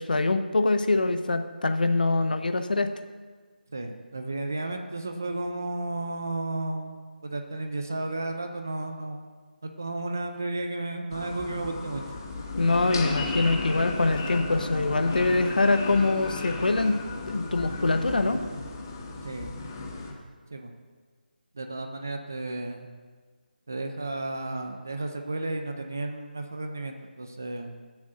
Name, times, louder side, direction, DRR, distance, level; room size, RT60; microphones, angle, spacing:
voice 1, 0.0-2.9 12.6-17.0 17.3-18.4, left 3 dB, 55° left, 9 dB, 0.8 m, -24 dB
voice 2, 3.7-7.0 7.2-9.2 9.6-12.0 19.2-19.5 20.5-20.7 21.5-22.9 23.7-27.7, right 2 dB, 15° right, 5 dB, 0.3 m, -33 dB
sound 1, 11.1-20.1, left 3 dB, 20° left, 1.0 m, -34 dB
7.5 x 7.3 x 6.5 m, 1.5 s
figure-of-eight pair, 180°, 5 cm